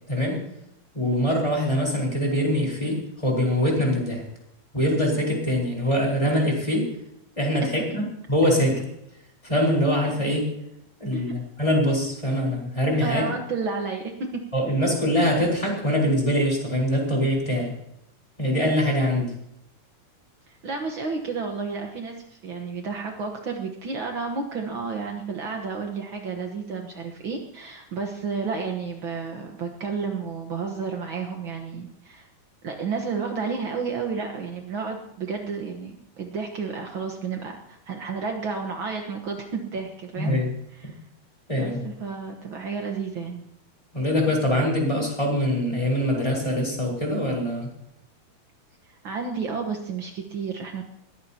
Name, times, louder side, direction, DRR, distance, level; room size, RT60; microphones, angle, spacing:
voice 1, 0.1-0.4 0.9-4.2 4.7-6.9 7.4-8.0 8.3-8.8 9.4-10.5 11.0-13.3 14.5-17.7 18.4-19.3 40.2-40.5 41.5-41.9 43.9-47.7, equal, 10° left, -2 dB, 4.4 m, -23 dB
voice 2, 13.0-14.4 20.5-32.3 32.6-40.3 40.7-41.0 41.6-43.4 48.8-50.8, right 5 dB, 80° right, 2 dB, 1.1 m, -31 dB
21.5 x 16.5 x 2.9 m, 0.77 s
omnidirectional pair, 4.3 m